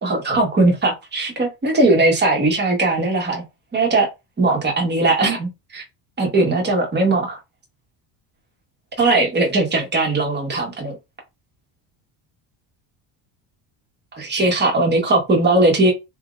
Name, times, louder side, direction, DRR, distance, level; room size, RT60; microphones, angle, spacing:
voice 1, 0.0-3.4 3.7-4.1 4.4-5.8 6.2-7.4 9.0-10.9 14.1-15.9, right 2 dB, 20° right, 1.4 m, -19 dB
3.6 x 2.6 x 2.5 m
cardioid pair, 140°, 47 cm